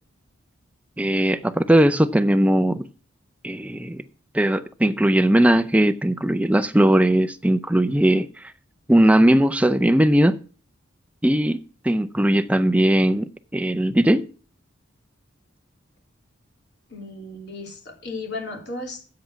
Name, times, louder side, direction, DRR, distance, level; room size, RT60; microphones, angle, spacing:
voice 1, 1.0-2.9 3.4-4.0 4.3-8.5 8.9-10.4 11.2-14.2, right 1 dB, 5° right, 0.4 m, -19 dB
voice 2, 16.9-19.0, left 2 dB, 55° left, 3.1 m, -34 dB
8.5 x 7.7 x 5.8 m
head